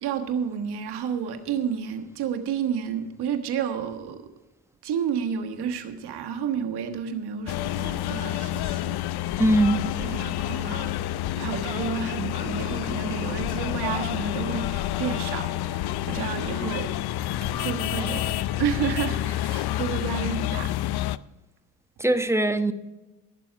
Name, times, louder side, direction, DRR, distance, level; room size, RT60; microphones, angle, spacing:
voice 1, 0.0-4.3 4.8-8.9 9.3-9.4 10.0-10.9 11.4-16.9 17.5-20.7, right 8 dB, 90° right, 1.5 m, -31 dB
sound 1, 7.5-21.2, left 13 dB, 80° left, 0.6 m, -29 dB
voice 2, 9.4-9.8 22.0-22.7, right 1 dB, 5° right, 1.1 m, -21 dB
16.5 x 7.3 x 5.8 m
cardioid pair, 65°, 38 cm